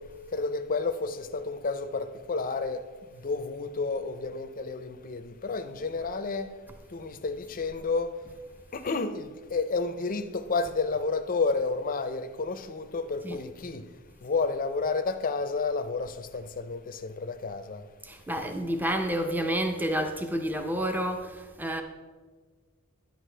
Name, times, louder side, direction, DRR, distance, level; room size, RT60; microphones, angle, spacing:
voice 1, 0.3-2.8 3.1-6.5 6.9-8.2 8.7-13.9 14.2-17.8, left 4 dB, 40° left, 0.6 m, -31 dB
voice 2, 18.0-21.8, right 1 dB, 10° right, 0.6 m, -29 dB
10.5 x 9.2 x 3.3 m
head